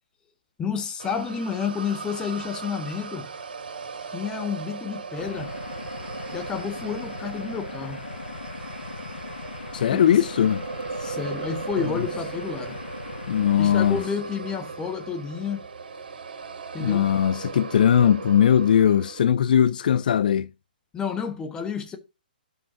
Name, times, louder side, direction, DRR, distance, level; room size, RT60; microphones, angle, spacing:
voice 1, 0.6-3.3 4.1-5.5 6.3-8.0 9.9-10.2 11.0-12.8 13.6-15.6 16.7-17.1 20.9-22.0, left 6 dB, 15° left, 1.4 m, -30 dB
sound 1, 1.0-19.3, right 5 dB, 75° right, 2.4 m, -37 dB
sound 2, 5.2-14.1, left 5 dB, 80° left, 1.0 m, -39 dB
voice 2, 9.7-10.6 13.3-14.0 16.8-20.5, left 9 dB, 60° left, 0.5 m, -20 dB
11.5 x 5.4 x 5.8 m
hypercardioid pair, 140°, 5 cm